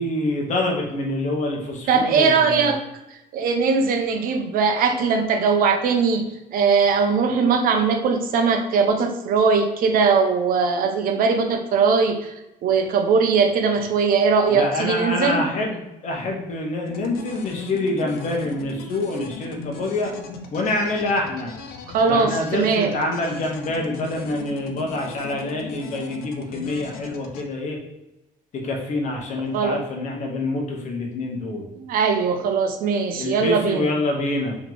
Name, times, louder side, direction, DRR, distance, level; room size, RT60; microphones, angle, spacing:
voice 1, 0.0-2.7 14.5-20.1 20.5-21.5 22.1-27.8 28.5-31.6 33.1-34.6, left 2 dB, 50° left, 0 dB, 1.1 m, -26 dB
voice 2, 1.9-2.8 3.1-6.2 6.5-12.3 12.6-15.4 21.9-23.0 29.5-29.8 31.8-33.9, right 5 dB, 70° right, 5 dB, 0.7 m, -20 dB
sound 1, 16.9-27.4, left 5 dB, 85° left, 0.6 m, -38 dB
3.6 x 3.1 x 3.8 m, 0.93 s
cardioid pair, 145°, 15 cm